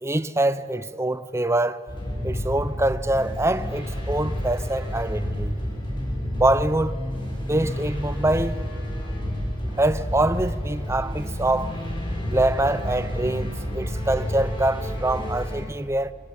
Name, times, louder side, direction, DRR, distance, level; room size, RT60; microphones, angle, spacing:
voice 1, 0.0-1.8 2.2-5.6 6.3-6.9 7.5-8.6 9.8-11.7 12.3-16.1, right 1 dB, 15° right, 0.8 m, -24 dB
sound 1, 1.9-15.6, equal, 30° left, 6.9 m, -30 dB
27.0 x 22.0 x 9.6 m
head